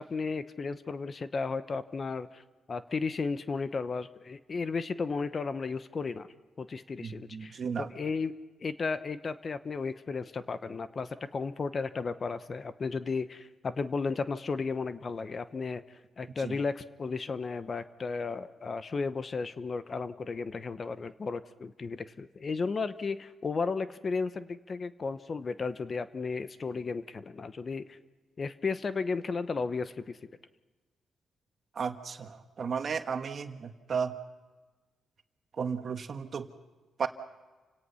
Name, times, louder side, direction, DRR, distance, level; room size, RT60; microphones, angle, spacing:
voice 1, 0.0-2.4 2.7-6.3 6.6-8.3 8.6-15.8 16.2-28.0 28.4-30.2, left 4 dB, 45° left, 13 dB, 0.9 m, -34 dB
voice 2, 7.0-7.9 16.4-16.5 31.7-34.1 35.6-36.5 37.0-37.1, right 6 dB, 55° right, 7 dB, 1.5 m, -34 dB
29.0 x 17.5 x 5.7 m, 1.3 s
cardioid pair, 65°, 0 cm